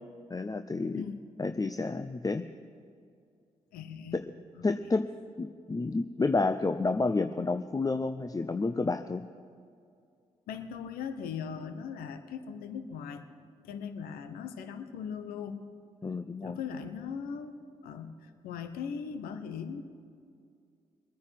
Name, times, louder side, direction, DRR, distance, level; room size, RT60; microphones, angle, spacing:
voice 1, 0.3-1.1 1.4-2.5 4.1-4.2 4.6-5.1 5.4-9.2 16.0-16.6, left 3 dB, 25° left, 9 dB, 0.6 m, -30 dB
voice 2, 3.7-4.2 4.6-4.7 10.5-13.2 13.6-15.6 16.4-19.8, left 6 dB, 85° left, 9 dB, 0.9 m, -39 dB
21.5 x 9.7 x 5.9 m, 2.3 s
supercardioid pair, 45°, 15 cm